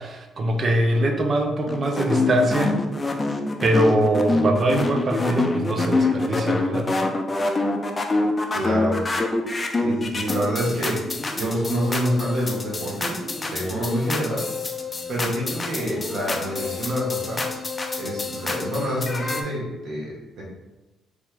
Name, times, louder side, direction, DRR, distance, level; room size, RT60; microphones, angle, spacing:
voice 1, 0.0-2.8 3.6-6.9 9.5-9.6, right 1 dB, 45° right, 4 dB, 0.5 m, -22 dB
sound 1, 1.7-19.4, left 3 dB, 25° left, 0.4 m, -26 dB
voice 2, 8.5-9.0 9.7-11.0 11.3-14.5 15.1-17.4 18.0-20.4, equal, 70° right, -4 dB, 1.3 m, -27 dB
3.4 x 2.8 x 3.3 m, 1.1 s
cardioid pair, 90°, 0 cm